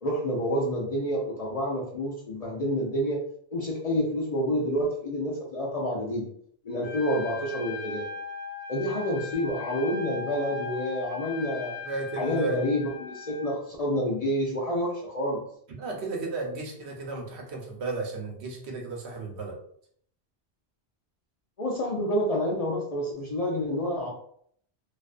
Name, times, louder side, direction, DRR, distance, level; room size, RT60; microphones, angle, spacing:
voice 1, 0.0-3.2 3.5-6.3 6.6-8.1 8.7-11.7 12.2-15.4 21.6-24.1, equal, 50° left, -4 dB, 0.5 m, -28 dB
Trumpet, 6.8-13.5, left 5 dB, 15° left, 1.0 m, -38 dB
voice 2, 11.8-12.6 15.7-19.6, right 3 dB, 85° right, 0 dB, 0.9 m, -34 dB
2.4 x 2.2 x 2.4 m, 0.64 s
omnidirectional pair, 1.1 m